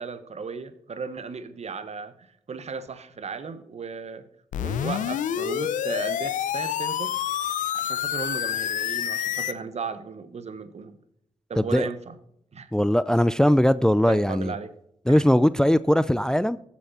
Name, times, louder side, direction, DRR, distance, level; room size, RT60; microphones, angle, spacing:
voice 1, 0.0-4.2 4.6-7.1 7.7-11.0 11.5-12.2 12.5-12.7 14.1-14.7 15.1-15.2, right 5 dB, 55° right, 1.2 m, -35 dB
sound 1, 4.5-9.5, left 10 dB, 80° left, 0.6 m, -28 dB
voice 2, 11.6-11.9 12.7-14.5 15.1-16.6, equal, 5° left, 0.4 m, -20 dB
15.0 x 7.4 x 4.3 m
supercardioid pair, 40°, 13 cm